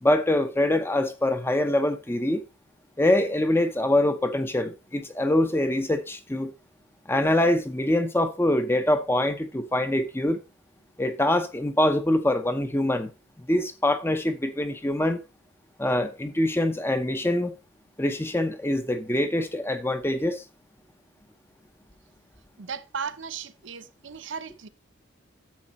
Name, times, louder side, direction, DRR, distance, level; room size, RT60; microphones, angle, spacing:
voice 1, 0.0-2.4 3.0-6.5 7.1-10.4 11.0-13.1 13.4-15.2 15.8-17.5 18.0-20.4, left 1 dB, 10° left, 0.7 m, -24 dB
voice 2, 22.6-24.7, right 6 dB, 60° right, 0.8 m, -36 dB
10.5 x 7.1 x 4.2 m
head